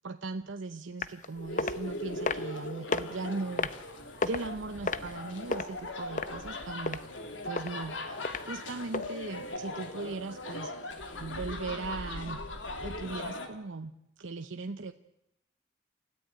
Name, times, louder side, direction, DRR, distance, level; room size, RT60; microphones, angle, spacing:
voice 1, 0.0-3.7 4.2-7.0 7.4-10.7 11.2-12.4 12.8-13.9 14.2-14.9, right 3 dB, 85° right, 8 dB, 0.8 m, -38 dB
sound 1, 1.0-1.3 1.6-1.8 2.3-2.6 2.9-3.0 3.6-3.8 4.2-4.5 4.9-5.6 6.2-6.5 6.9-7.0 7.6-7.7 8.2-8.4 8.9-9.1 9.5-9.6, left 3 dB, 40° left, 0.8 m, -30 dB
sound 2, 1.3-13.5, left 1 dB, 80° left, 2.9 m, -39 dB
29.0 x 14.5 x 8.7 m, 0.87 s
head